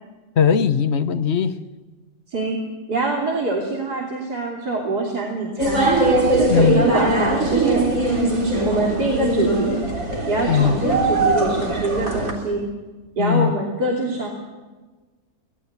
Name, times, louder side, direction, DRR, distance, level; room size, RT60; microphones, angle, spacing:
voice 1, 0.4-1.5 6.5-6.9 10.5-10.8 13.2-13.5, left 7 dB, 45° left, 1.1 m, -19 dB
voice 2, 2.9-5.9 6.3-7.8 8.7-9.8 10.3-12.6 13.2-14.3, right 2 dB, 75° right, 3.6 m, -24 dB
sound 1, 5.6-12.3, right 2 dB, 55° right, 4.1 m, -21 dB
25.0 x 19.5 x 8.2 m
omnidirectional pair, 1.7 m